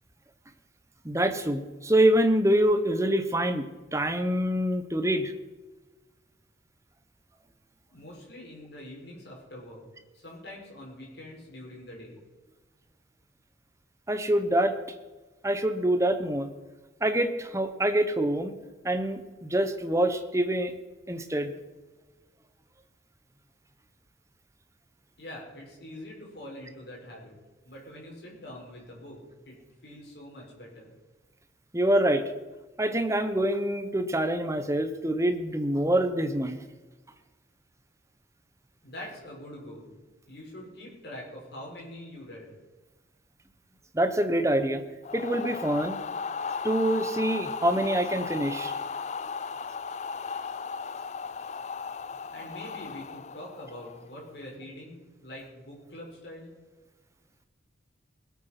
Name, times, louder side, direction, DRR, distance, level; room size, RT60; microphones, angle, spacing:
voice 1, 1.0-3.7 3.9-5.3 14.1-14.8 15.4-16.5 17.0-18.5 18.8-20.7 21.1-21.5 31.7-32.2 32.8-36.6 43.9-44.8 45.1-46.0 46.6-48.7, right 1 dB, 15° right, 8 dB, 1.1 m, -25 dB
voice 2, 7.9-9.8 10.1-12.2 25.2-27.3 27.6-29.2 29.5-29.6 29.8-30.9 38.8-39.9 40.2-42.5 52.3-56.5, left 1 dB, 60° left, -2 dB, 5.6 m, -44 dB
sound 1, 45.0-54.1, left 5 dB, 35° left, 0.3 m, -36 dB
20.5 x 8.5 x 6.0 m, 1.2 s
head